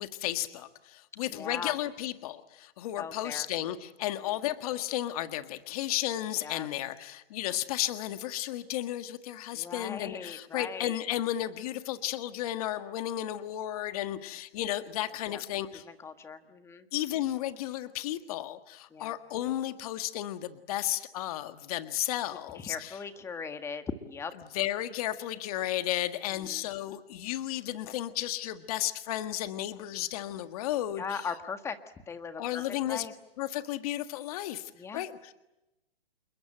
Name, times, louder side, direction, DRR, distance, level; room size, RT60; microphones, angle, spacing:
voice 1, 0.0-15.8 16.9-23.0 24.5-31.2 32.4-33.1 33.4-35.3, left 13 dB, 35° left, 10 dB, 1.7 m, -33 dB
voice 2, 1.3-1.7 3.0-3.5 6.4-6.7 9.5-11.0 15.3-15.4 15.8-16.9 18.9-19.2 22.5-24.3 26.3-26.6 31.0-31.8 32.1-33.1 34.7-35.0, left 5 dB, 10° left, 9 dB, 1.6 m, -39 dB
29.0 x 22.0 x 8.9 m, 0.94 s
hypercardioid pair, 155°, 30 cm